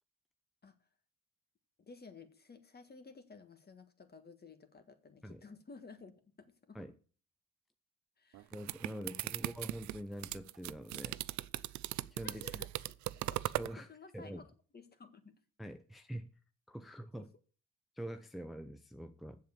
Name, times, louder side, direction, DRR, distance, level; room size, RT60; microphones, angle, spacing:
voice 1, 1.8-6.1 6.4-6.8 8.2-8.5 12.2-13.0 13.3-13.4 13.7-15.4 17.1-17.2, left 4 dB, 30° left, 1.6 m, -54 dB
sound 1, 8.3-13.7, right 16 dB, 70° right, 0.5 m, -39 dB
voice 2, 8.5-11.2 12.1-12.6 13.6-13.9 14.1-14.4 15.6-16.3 16.7-17.3 18.0-19.4, equal, ahead, 0.7 m, -45 dB
7.5 x 7.0 x 7.0 m
cardioid pair, 90°, 30 cm